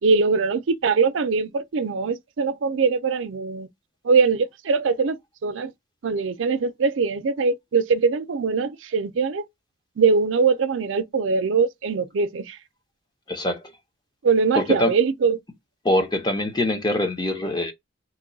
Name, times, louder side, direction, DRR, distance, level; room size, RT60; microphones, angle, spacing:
voice 1, 0.0-3.7 4.0-5.7 6.0-9.5 10.0-12.6 14.2-15.4, right 5 dB, 85° right, 0.5 m, -22 dB
voice 2, 13.3-13.7 14.5-14.9 15.8-17.7, left 1 dB, 25° left, 0.7 m, -23 dB
3.0 x 2.2 x 3.8 m
head